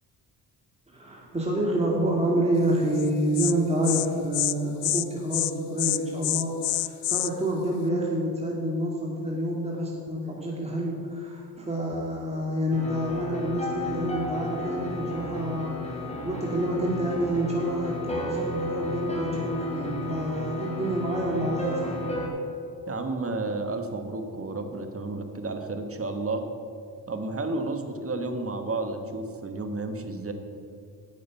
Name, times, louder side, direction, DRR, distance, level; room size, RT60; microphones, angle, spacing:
voice 1, 0.9-22.1, right 1 dB, 15° right, -2 dB, 2.3 m, -28 dB
Insect, 3.0-3.1 3.3-3.5 3.8-4.1 4.3-4.5 4.8-5.0 5.3-5.5 5.8-7.3, left 20 dB, 80° left, 0.5 m, -26 dB
sound 1, 12.7-22.3, left 1 dB, 15° left, 3.2 m, -33 dB
voice 2, 22.9-26.4 27.1-30.3, right 2 dB, 35° right, 6 dB, 1.5 m, -31 dB
8.9 x 6.5 x 8.4 m, 2.3 s
supercardioid pair, 55°, 42 cm